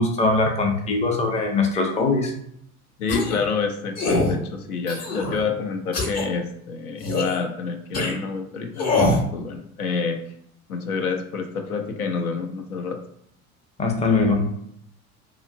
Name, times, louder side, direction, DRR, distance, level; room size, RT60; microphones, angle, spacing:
voice 1, 0.0-2.3 13.8-14.6, left 3 dB, 15° left, 2 dB, 0.5 m, -21 dB
voice 2, 3.0-10.2 10.7-13.0, left 5 dB, 85° left, 5 dB, 0.6 m, -28 dB
sound 1, 3.1-3.4 4.0-4.3 4.9-5.4 5.9-6.3 7.0-7.4 7.9-8.1 8.8-9.2, left 2 dB, 35° left, 0.9 m, -23 dB
2.8 x 2.5 x 2.6 m, 0.70 s
hypercardioid pair, 80°, 43 cm